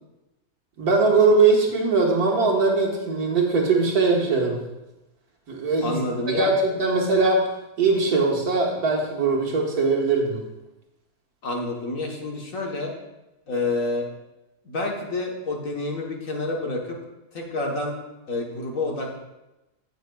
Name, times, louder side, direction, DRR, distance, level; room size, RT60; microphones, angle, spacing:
voice 1, 0.8-4.6 5.5-6.0 6.3-7.5 7.8-10.4, right 3 dB, 65° right, 0 dB, 1.9 m, -21 dB
voice 2, 5.8-6.5 11.4-12.9 13.5-14.0 14.6-17.0 17.3-17.9 18.3-19.2, left 2 dB, 55° left, 0 dB, 1.6 m, -28 dB
16.5 x 6.4 x 2.3 m, 0.99 s
omnidirectional pair, 1.7 m